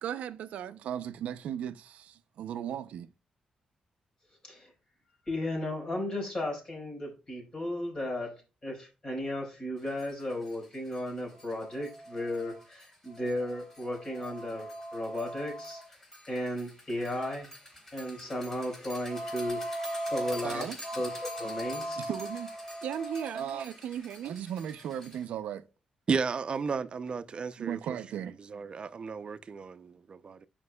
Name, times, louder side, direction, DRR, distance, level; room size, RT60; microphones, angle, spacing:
voice 1, 0.0-3.1 20.4-20.8 22.0-22.5 22.8-25.6 27.6-28.4, right 9 dB, 90° right, 0.6 m, -36 dB
voice 2, 5.3-16.0 16.3-17.5 17.9-19.8 20.1-20.7 20.9-22.0, left 1 dB, 40° left, 4.7 m, -35 dB
sound 1, 10.0-10.1 10.5-10.6 10.9-11.0 11.3-25.2, right 1 dB, 20° left, 3.6 m, -40 dB
voice 3, 26.1-27.8 28.5-30.5, right 5 dB, 50° right, 0.6 m, -33 dB
14.5 x 5.2 x 2.3 m
cardioid pair, 80°, 2 cm